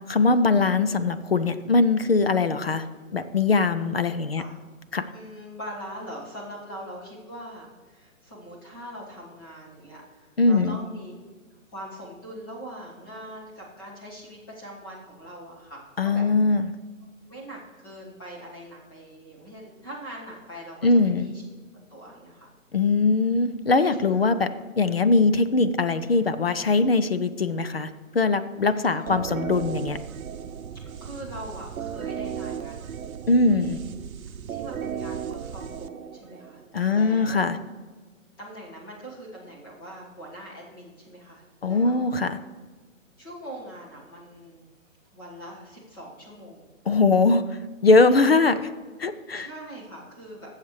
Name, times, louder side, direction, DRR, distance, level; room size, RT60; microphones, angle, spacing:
voice 1, 0.1-2.9 3.1-4.4 4.9-5.1 10.4-10.8 16.0-16.7 20.8-21.3 22.7-24.5 24.8-30.0 33.3-33.8 36.7-37.6 41.6-42.4 46.9-48.7 49.0-49.5, left 3 dB, 50° left, 11 dB, 0.4 m, -21 dB
voice 2, 5.1-11.1 11.7-16.2 17.3-21.4 21.9-22.5 24.0-24.3 28.7-29.5 31.0-33.0 33.4-33.8 34.5-37.4 38.4-42.0 43.2-44.7 45.1-46.7 49.3-50.5, equal, 15° left, -4 dB, 1.4 m, -42 dB
sound 1, 29.1-36.7, right 8 dB, 90° right, 0.7 m, -35 dB
14.0 x 7.3 x 3.2 m, 1.4 s
hypercardioid pair, 175°, 41 cm